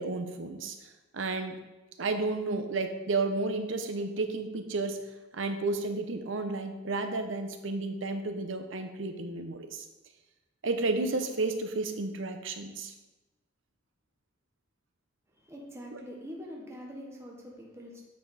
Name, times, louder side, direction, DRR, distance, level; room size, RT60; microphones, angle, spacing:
voice 1, 0.0-1.6 2.0-5.0 5.3-9.8 10.6-12.9 15.9-16.0, right 3 dB, 75° right, 7 dB, 0.8 m, -32 dB
voice 2, 15.3-18.0, equal, 15° right, -2 dB, 1.1 m, -44 dB
8.4 x 5.0 x 4.1 m, 1.1 s
head